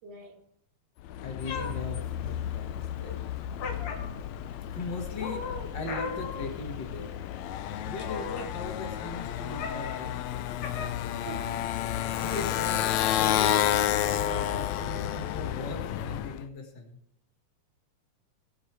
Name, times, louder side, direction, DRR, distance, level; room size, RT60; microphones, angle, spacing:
voice 1, 0.0-0.4 8.7-8.8 11.2-11.6 12.1-13.1, right 5 dB, 90° right, 2 dB, 3.3 m, -45 dB
Motorcycle, 1.0-16.4, left 11 dB, 80° left, 1.7 m, -31 dB
voice 2, 1.2-3.2 4.7-7.1 7.8-10.1 12.2-17.0, left 2 dB, 40° left, 3 dB, 1.9 m, -39 dB
Meow, 1.4-13.0, left 5 dB, 65° left, 2.5 m, -41 dB
19.0 x 8.3 x 3.4 m, 0.77 s
omnidirectional pair, 3.7 m